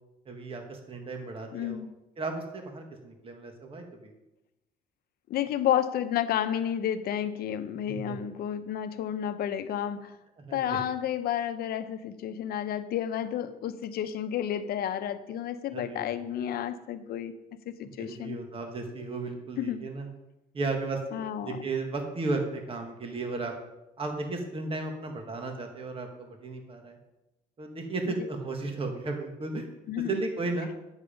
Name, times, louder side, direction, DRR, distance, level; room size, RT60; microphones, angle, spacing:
voice 1, 0.3-1.8 2.2-4.1 7.9-8.2 10.4-10.8 15.7-16.1 18.0-20.1 20.5-23.5 24.0-27.0 27.6-29.7 30.1-30.7, right 3 dB, 35° right, 3 dB, 1.8 m, -34 dB
voice 2, 1.5-1.9 5.3-10.2 10.5-17.3 17.7-18.4 19.6-19.9 21.1-21.6 28.1-28.3 29.9-30.2, left 10 dB, 65° left, 10 dB, 0.9 m, -31 dB
9.5 x 7.3 x 5.2 m, 0.93 s
cardioid pair, 110°, 17 cm